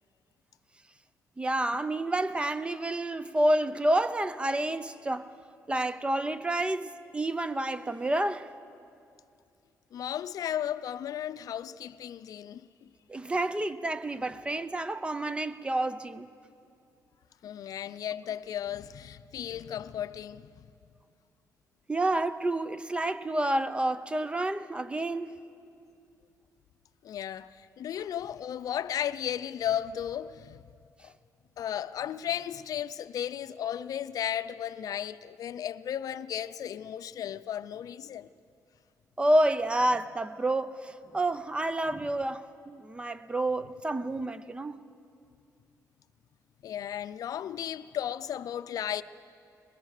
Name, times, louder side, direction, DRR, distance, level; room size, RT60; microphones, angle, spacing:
voice 1, 1.4-5.3 5.7-8.5 13.1-16.3 21.9-25.3 39.2-44.8, right 1 dB, 15° right, 0.7 m, -29 dB
voice 2, 9.9-12.9 17.4-20.6 27.0-30.6 31.0-31.1 31.6-38.3 46.6-49.0, left 10 dB, 70° left, 0.5 m, -35 dB
23.0 x 21.0 x 6.6 m
cardioid pair, 105°, 6 cm